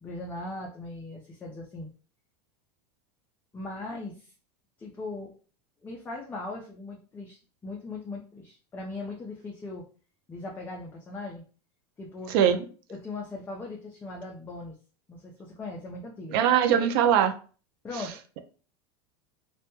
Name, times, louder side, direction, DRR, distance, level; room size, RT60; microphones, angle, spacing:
voice 1, 0.0-1.9 3.5-4.3 4.8-5.3 5.8-9.8 10.3-11.4 12.0-12.6 12.9-14.7 15.1-16.4 17.8-18.1, left 2 dB, 15° left, 0.4 m, -39 dB
voice 2, 16.3-17.3, right 9 dB, 60° right, 0.4 m, -21 dB
2.1 x 2.0 x 2.9 m
supercardioid pair, 135°, 14 cm